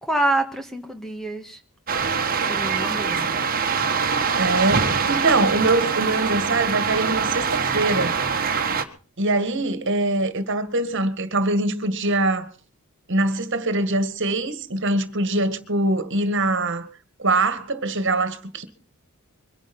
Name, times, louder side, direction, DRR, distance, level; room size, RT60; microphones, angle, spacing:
voice 1, 0.0-1.6 2.5-3.3, right 1 dB, ahead, 1.7 m, -26 dB
sound 1, 1.9-8.8, right 5 dB, 40° right, 1.7 m, -23 dB
voice 2, 4.4-8.2 9.2-12.5 13.1-16.9 17.2-18.6, right 2 dB, 55° right, 2.0 m, -23 dB
23.5 x 10.5 x 5.5 m
head